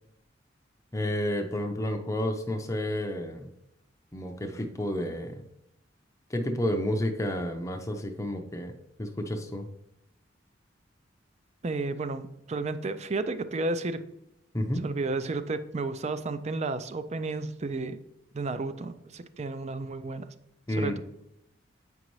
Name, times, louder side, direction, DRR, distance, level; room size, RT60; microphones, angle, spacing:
voice 1, 0.9-3.5 4.1-5.4 6.3-8.7 9.0-9.7 14.5-14.8 20.7-21.0, left 1 dB, 15° left, 4 dB, 0.6 m, -30 dB
voice 2, 11.6-14.0 14.8-18.0 18.3-20.3 20.7-21.0, right 3 dB, 35° right, 12 dB, 0.4 m, -32 dB
8.5 x 5.3 x 3.1 m, 0.84 s
head